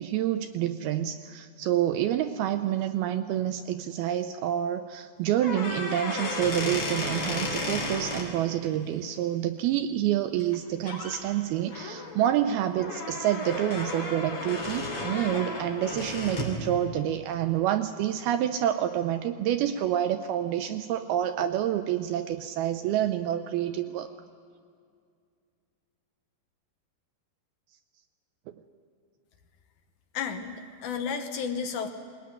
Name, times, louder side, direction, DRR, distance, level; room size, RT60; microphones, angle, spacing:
voice 1, 0.0-24.1, right 11 dB, 80° right, 9 dB, 2.3 m, -28 dB
sound 1, 5.3-8.3 10.4-10.6 10.9-11.2 11.7-16.6, left 2 dB, 35° left, 3.7 m, -33 dB
voice 2, 30.1-31.9, left 6 dB, 75° left, 5 dB, 1.8 m, -32 dB
20.0 x 19.5 x 9.6 m, 2.2 s
omnidirectional pair, 5.0 m